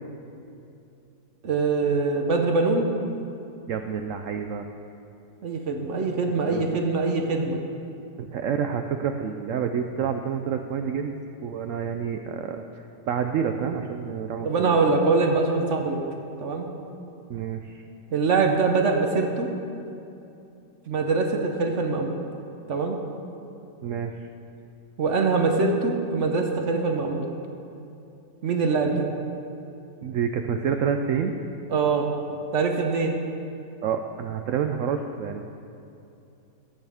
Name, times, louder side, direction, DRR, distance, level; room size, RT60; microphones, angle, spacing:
voice 1, 1.4-2.9 5.4-7.6 14.4-16.0 16.4-16.7 18.1-19.5 20.9-22.1 22.7-23.0 25.0-27.3 28.4-29.1 31.7-33.1, right 4 dB, 55° right, 3 dB, 1.0 m, -23 dB
voice 2, 3.7-4.7 6.4-6.6 8.2-12.6 13.1-14.8 17.3-17.8 23.8-24.3 30.0-31.4 33.8-35.4, right 7 dB, 90° right, 6 dB, 0.7 m, -28 dB
15.5 x 8.7 x 3.5 m, 2.7 s
omnidirectional pair, 1.9 m